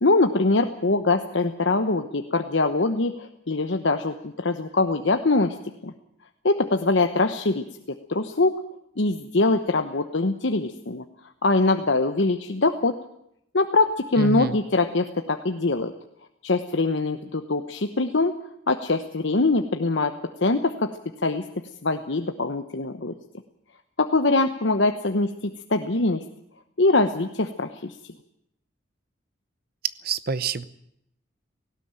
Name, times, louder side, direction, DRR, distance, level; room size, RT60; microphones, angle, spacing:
voice 1, 0.0-5.6 5.8-5.9 6.4-8.5 9.0-11.0 11.4-12.9 13.5-15.9 16.4-18.3 18.7-20.9 21.2-21.5 21.8-23.1 24.0-26.2 26.8-27.9, left 3 dB, 65° left, 6 dB, 1.0 m, -23 dB
voice 2, 14.2-14.6 30.0-30.7, right 4 dB, 50° right, 16 dB, 0.8 m, -27 dB
18.0 x 17.0 x 9.0 m, 0.77 s
head